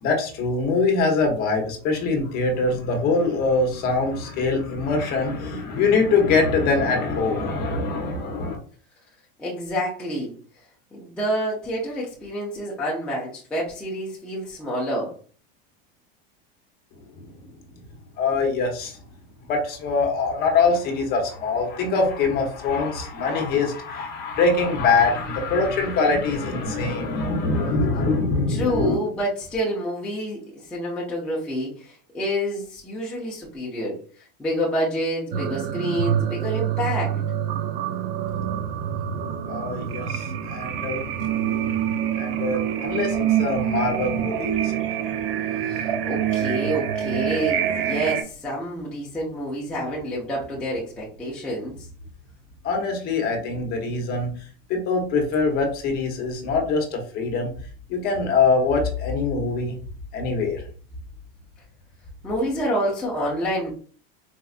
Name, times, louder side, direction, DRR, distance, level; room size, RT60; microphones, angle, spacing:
voice 1, 0.0-8.6 17.2-17.3 18.2-19.0 19.5-28.9 39.5-41.0 42.2-44.8 52.6-54.3 54.7-57.5 57.9-59.8 60.1-60.6, left 4 dB, 30° left, 2 dB, 0.9 m, -23 dB
voice 2, 9.4-10.3 10.9-15.1 28.5-30.4 30.7-34.0 34.4-37.2 45.5-51.9 62.2-63.7, equal, 5° left, -6 dB, 0.5 m, -28 dB
sound 1, 35.3-48.2, right 10 dB, 75° right, 0.5 m, -26 dB
4.2 x 2.4 x 2.4 m, 0.42 s
supercardioid pair, 160°, 30 cm